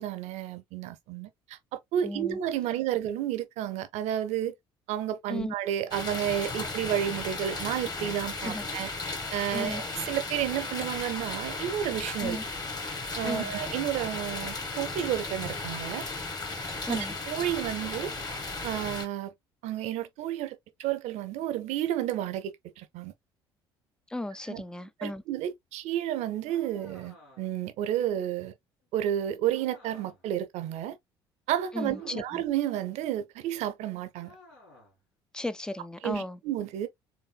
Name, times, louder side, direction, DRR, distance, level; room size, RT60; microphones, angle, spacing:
voice 1, 0.0-1.6 1.9-4.5 4.9-12.4 13.2-16.0 16.9-18.1 18.6-19.3 19.6-23.1 24.5-24.6 25.0-28.5 28.9-31.0 31.5-34.4 36.0-36.9, right 11 dB, 60° right, 0.7 m, -31 dB
voice 2, 2.0-2.4 5.3-5.6 8.4-8.6 9.5-9.8 12.2-12.4 13.2-13.5 16.9-17.1 24.1-25.2 31.7-32.4 35.3-36.4, left 2 dB, 5° left, 0.4 m, -35 dB
sound 1, 5.9-19.1, left 3 dB, 30° left, 1.5 m, -35 dB
sound 2, 26.5-27.7 29.5-30.3 31.9-32.6 34.2-35.0, left 2 dB, 80° left, 2.1 m, -56 dB
4.2 x 3.3 x 2.2 m
figure-of-eight pair, 55°, 13 cm